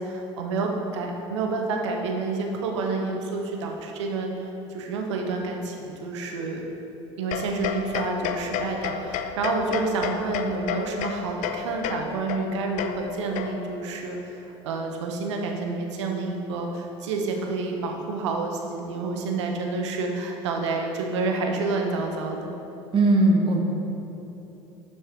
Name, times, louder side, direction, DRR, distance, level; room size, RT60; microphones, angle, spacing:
voice 1, 0.0-6.7 7.2-14.4 14.6-22.5, right 3 dB, 80° right, 2 dB, 0.9 m, -29 dB
sound 1, 7.3-13.9, left 8 dB, 60° left, 0.5 m, -32 dB
voice 2, 22.9-23.6, right 2 dB, 35° right, 0 dB, 1.2 m, -18 dB
12.0 x 4.2 x 3.6 m, 2.9 s
hypercardioid pair, 70°, 15 cm